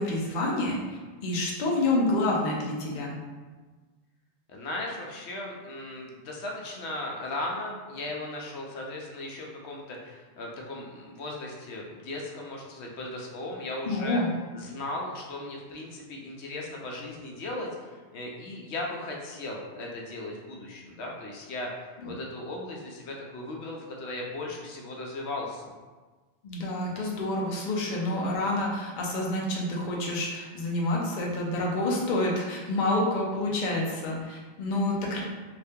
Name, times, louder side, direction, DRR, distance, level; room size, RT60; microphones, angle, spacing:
voice 1, 0.0-3.2 13.9-14.3 26.4-35.2, left 2 dB, 55° left, -2 dB, 0.7 m, -28 dB
voice 2, 4.5-14.2 14.5-25.7, left 2 dB, 80° left, -1 dB, 0.9 m, -37 dB
2.7 x 2.5 x 3.4 m, 1.3 s
omnidirectional pair, 1.1 m